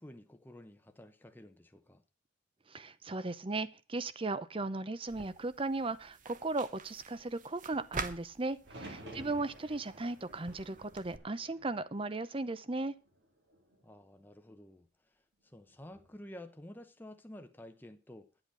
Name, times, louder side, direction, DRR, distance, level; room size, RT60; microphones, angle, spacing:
voice 1, 0.0-2.0 9.0-9.5 13.8-18.3, left 1 dB, 10° left, 0.8 m, -51 dB
voice 2, 2.7-13.0, right 2 dB, 30° right, 0.7 m, -37 dB
sound 1, 5.1-11.2, right 4 dB, 45° right, 1.1 m, -47 dB
sound 2, 8.6-12.7 13.0-13.8 15.7-16.2, right 1 dB, 70° right, 4.2 m, -52 dB
10.5 x 7.9 x 6.3 m
head